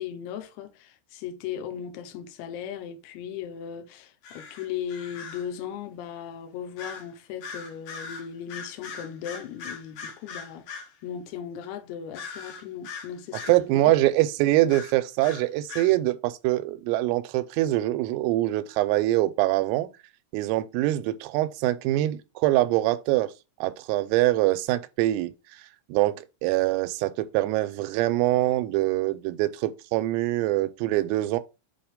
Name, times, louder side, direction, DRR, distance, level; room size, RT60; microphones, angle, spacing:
voice 1, 0.0-13.9, left 9 dB, 90° left, 2.3 m, -37 dB
sound 1, 4.2-5.5 6.8-7.1 7.4-10.9 12.1-13.6 14.7-15.9, left 5 dB, 70° left, 2.2 m, -40 dB
voice 2, 13.5-19.9 20.3-23.3 23.6-25.3 25.9-31.4, right 16 dB, 85° right, 3.3 m, -24 dB
7.8 x 2.8 x 5.0 m
omnidirectional pair, 5.9 m